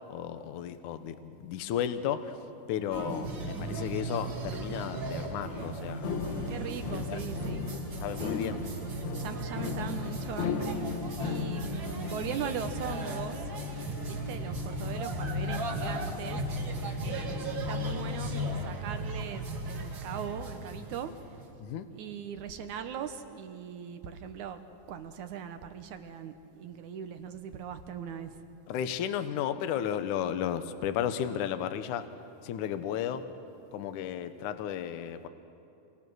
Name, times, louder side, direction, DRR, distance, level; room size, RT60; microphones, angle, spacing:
voice 1, 0.1-2.3 2.7-6.2 6.9-7.2 8.0-8.6 21.6-21.9 28.7-32.1 32.4-33.2 33.7-35.3, left 9 dB, 70° left, 10 dB, 2.1 m, -33 dB
sound 1, 2.9-21.4, right 3 dB, 40° right, 2.0 m, -37 dB
sound 2, 6.0-18.6, left 7 dB, 85° left, 3.2 m, -37 dB
voice 2, 6.5-7.7 8.2-8.4 9.2-10.8 11.2-13.5 14.0-16.4 17.0-18.3 18.6-21.1 21.9-24.6 24.9-28.4, right 8 dB, 70° right, 8 dB, 2.1 m, -40 dB
29.0 x 22.5 x 6.3 m, 2.7 s
omnidirectional pair, 4.2 m